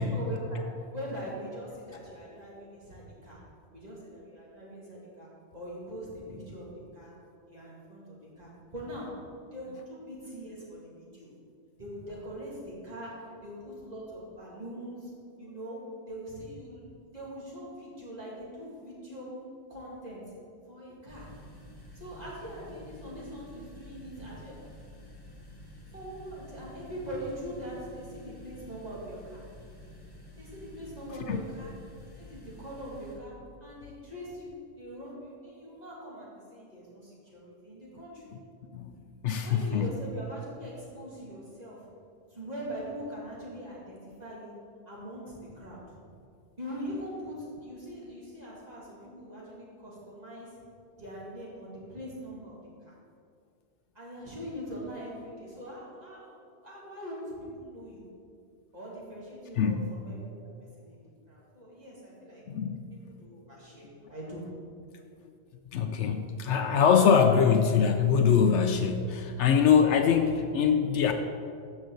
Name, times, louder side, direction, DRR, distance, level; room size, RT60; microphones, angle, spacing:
voice 1, 0.0-3.4 3.7-7.1 7.5-9.2 9.5-11.3 11.8-15.1 15.4-16.8 17.1-19.4 19.7-20.4 20.7-21.3 21.9-24.7 25.9-29.5 30.4-31.8 32.2-38.3 39.4-41.9 42.3-46.0 46.6-50.6 51.0-52.9 53.9-58.1 58.7-62.4 62.9-64.6, equal, 30° right, -6 dB, 2.5 m, -42 dB
sound 1, 21.1-33.2, left 1 dB, 20° left, 1.2 m, -50 dB
voice 2, 39.2-39.8 59.6-59.9 62.5-62.9 65.7-71.1, left 7 dB, 70° left, 6 dB, 0.9 m, -23 dB
13.0 x 6.2 x 4.0 m, 2.4 s
omnidirectional pair, 1.3 m